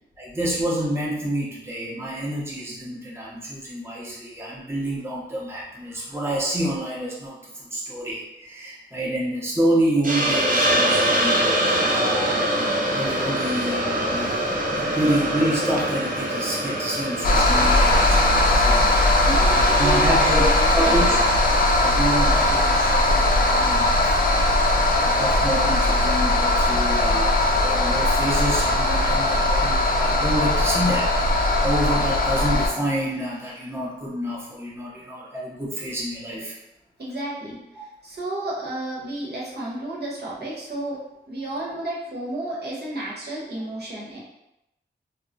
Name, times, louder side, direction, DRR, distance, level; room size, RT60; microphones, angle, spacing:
voice 1, 0.2-12.4 12.9-18.8 19.1-21.2 21.6-24.6 25.0-36.6, right 1 dB, 15° right, -6 dB, 0.7 m, -28 dB
Hiss, 10.0-22.6, right 1 dB, 50° right, 0.6 m, -25 dB
sound 1, 17.2-32.7, left 1 dB, 50° left, 0.4 m, -19 dB
voice 2, 19.2-21.2 37.0-37.6 38.0-41.0 41.3-44.2, right 1 dB, 65° right, -6 dB, 1.0 m, -31 dB
2.2 x 2.1 x 3.7 m, 0.86 s
wide cardioid pair, 70°, 18 cm